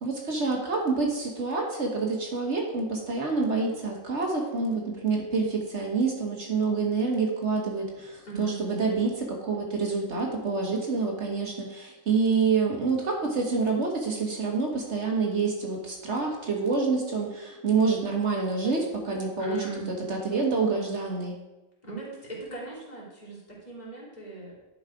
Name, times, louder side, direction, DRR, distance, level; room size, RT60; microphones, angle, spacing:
voice 1, 0.0-19.6 20.1-21.4, right 4 dB, 60° right, 0 dB, 1.5 m, -27 dB
voice 2, 8.2-8.6 19.4-19.9 21.8-24.6, right 3 dB, 30° left, -6 dB, 3.0 m, -39 dB
11.0 x 4.8 x 4.8 m, 1.1 s
omnidirectional pair, 1.4 m